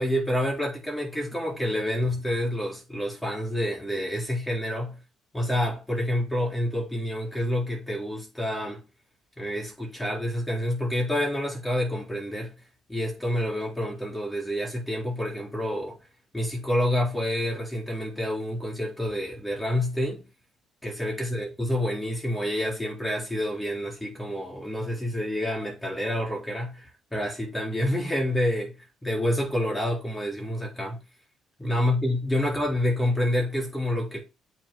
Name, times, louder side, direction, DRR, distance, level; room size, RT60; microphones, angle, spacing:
voice 1, 0.0-5.0 5.3-8.8 9.4-12.5 12.9-16.0 16.3-20.2 20.8-28.7 29.0-31.0 31.6-34.2, left 1 dB, 5° left, 3.7 m, -28 dB
8.5 x 3.2 x 4.4 m
cardioid pair, 120°, 0 cm